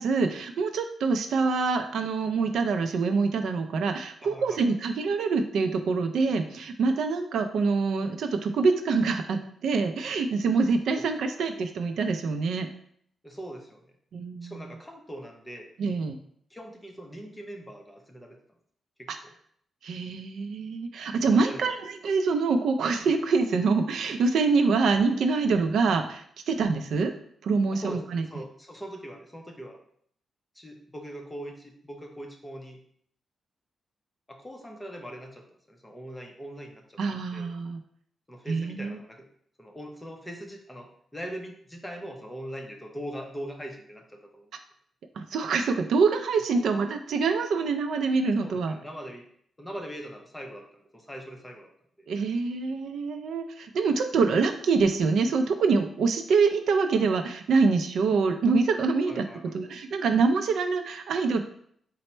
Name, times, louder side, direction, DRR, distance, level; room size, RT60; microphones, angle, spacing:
voice 1, 0.0-12.7 14.1-14.5 15.8-16.2 19.1-19.2 19.8-27.1 27.4-28.2 37.0-37.8 38.5-39.0 45.2-48.8 52.1-61.4, right 4 dB, 75° right, 7 dB, 0.4 m, -25 dB
voice 2, 4.2-4.8 11.0-11.1 13.2-13.8 14.4-15.7 16.5-18.4 19.0-19.3 21.3-21.7 27.7-29.8 30.5-32.8 34.3-37.0 37.3-37.5 38.3-39.3 39.6-44.5 48.4-49.2 49.6-51.7 52.0-52.1 59.1-59.6, equal, 10° left, 1 dB, 0.6 m, -41 dB
4.2 x 2.0 x 4.3 m, 0.64 s
wide cardioid pair, 135°, 0 cm